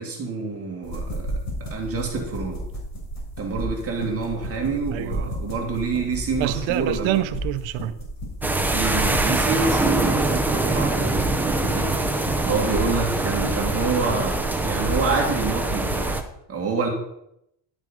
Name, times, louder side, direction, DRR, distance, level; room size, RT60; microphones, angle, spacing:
voice 1, 0.0-1.3 1.6-2.6 3.4-7.2 8.7-12.0 12.4-14.4 14.6-16.1 16.5-16.9, right 4 dB, 30° right, 2.2 m, -27 dB
sound 1, 0.8-16.2, equal, 35° left, 3.7 m, -33 dB
voice 2, 4.9-5.3 6.4-8.0, right 13 dB, 75° right, 0.8 m, -26 dB
sound 2, 8.4-16.2, right 2 dB, 5° right, 0.5 m, -24 dB
11.5 x 6.5 x 5.1 m
cardioid pair, 165°, 47 cm